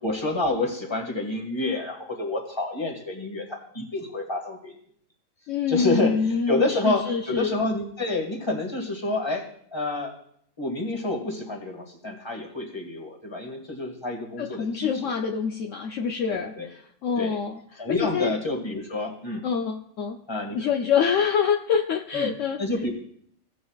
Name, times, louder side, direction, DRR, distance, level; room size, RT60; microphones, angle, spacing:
voice 1, 0.0-4.8 5.7-10.1 10.6-15.0 16.3-16.7 17.2-17.4 17.8-19.4 20.3-20.7 22.1-22.3 22.6-22.9, left 2 dB, 20° left, 1 dB, 1.8 m, -28 dB
voice 2, 5.5-7.5 14.4-18.3 19.4-20.2 20.5-22.6, left 6 dB, 70° left, 3 dB, 1.0 m, -26 dB
16.0 x 8.2 x 2.4 m, 0.65 s
omnidirectional pair, 1.4 m